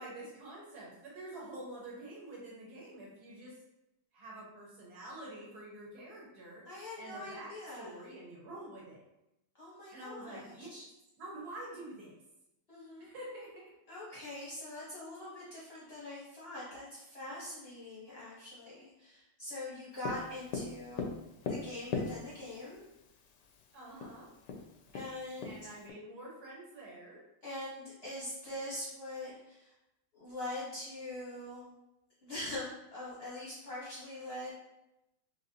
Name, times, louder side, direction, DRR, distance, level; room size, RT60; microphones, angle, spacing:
voice 1, 0.0-3.6 4.1-9.0 9.9-10.7 11.2-12.1 13.0-13.6 23.7-24.3 25.4-27.2, right 1 dB, 55° right, -4 dB, 1.4 m, -47 dB
voice 2, 6.7-8.0 9.6-10.8 12.7-13.1 13.9-21.2 21.5-22.8 24.9-25.7 27.4-29.7 30.1-31.7 32.2-34.5, left 1 dB, 45° left, -8 dB, 0.8 m, -43 dB
Tap, 20.0-22.6 23.6-23.7 24.0-24.1 24.5-25.9, left 4 dB, 75° left, 1.0 m, -38 dB
4.0 x 2.9 x 2.7 m, 0.90 s
omnidirectional pair, 2.3 m